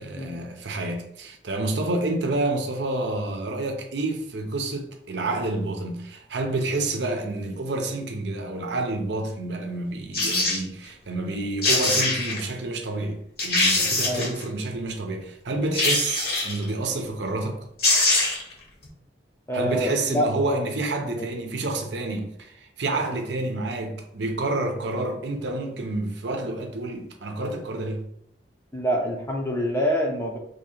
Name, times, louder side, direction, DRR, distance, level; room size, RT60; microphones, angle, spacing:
voice 1, 0.0-17.6 19.5-28.0, right 2 dB, 80° right, 0.6 m, -29 dB
sound 1, 10.1-10.6 11.3-11.4 11.6-12.4 13.0-13.1 13.4-14.4 15.7-16.6 17.5-17.6 17.8-18.5 18.8-18.9, left 2 dB, 55° left, 1.2 m, -23 dB
voice 2, 19.5-20.3 21.2-21.3 28.7-30.4, equal, 15° left, 0.6 m, -26 dB
2.8 x 2.8 x 4.3 m
head